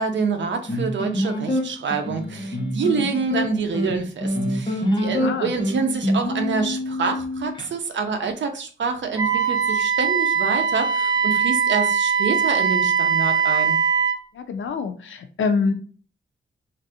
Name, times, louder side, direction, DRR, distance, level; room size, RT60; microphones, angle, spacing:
voice 1, 0.0-13.8, right 4 dB, 65° right, 6 dB, 0.6 m, -26 dB
sound 1, 0.7-7.7, equal, 20° left, 0.8 m, -25 dB
voice 2, 5.1-5.5 14.3-15.7, left 4 dB, 70° left, 8 dB, 0.4 m, -25 dB
Wind instrument woodwind instrument, 9.2-14.2, right 6 dB, 20° right, 0.4 m, -21 dB
3.3 x 2.5 x 2.7 m, 0.40 s
wide cardioid pair, 110°, 21 cm